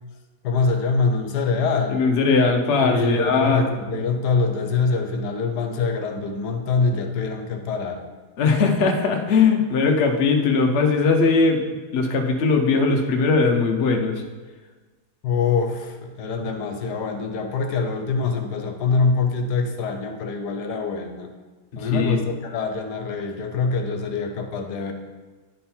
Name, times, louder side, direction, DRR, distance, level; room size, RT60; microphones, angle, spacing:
voice 1, 0.4-2.0 2.8-8.0 15.2-21.3 21.8-24.9, left 4 dB, 80° left, 5 dB, 1.3 m, -24 dB
voice 2, 1.9-3.6 8.4-14.2 21.7-22.2, left 4 dB, 50° left, 3 dB, 0.8 m, -20 dB
10.0 x 3.7 x 4.4 m, 1.3 s
omnidirectional pair, 1.8 m